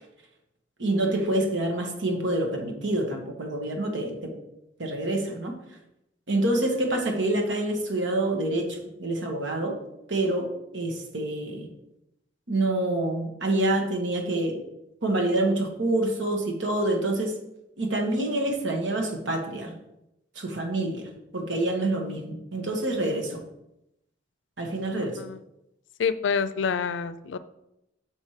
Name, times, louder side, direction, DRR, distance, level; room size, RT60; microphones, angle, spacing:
voice 1, 0.8-4.3 4.8-5.5 6.3-9.8 10.1-11.7 12.5-14.6 15.0-17.3 17.8-19.8 20.3-23.4 24.6-25.2, right 1 dB, 80° right, 2 dB, 1.4 m, -27 dB
voice 2, 26.0-27.4, left 6 dB, 80° left, 13 dB, 0.4 m, -27 dB
6.4 x 4.4 x 4.8 m, 0.85 s
head